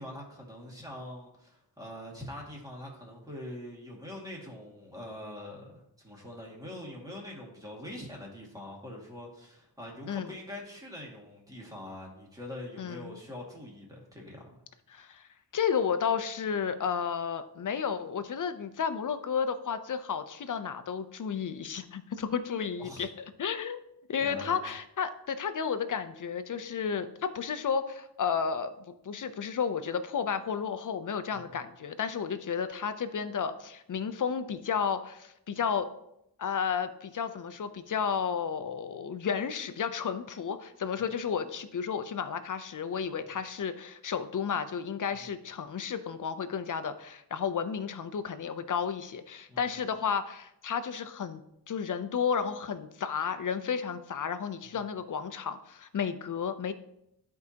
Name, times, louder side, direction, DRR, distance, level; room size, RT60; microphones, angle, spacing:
voice 1, 0.0-14.6 22.8-23.0 24.2-24.6 31.5-31.6 49.5-49.7, left 1 dB, 10° right, -2 dB, 2.1 m, -44 dB
voice 2, 12.8-13.2 14.9-15.3 15.5-23.1 23.4-23.8 24.1-28.7 29.0-35.9 36.4-51.4 51.7-56.7, left 7 dB, 50° left, 10 dB, 0.6 m, -32 dB
12.0 x 4.7 x 2.9 m, 0.80 s
wide cardioid pair, 110°, 41 cm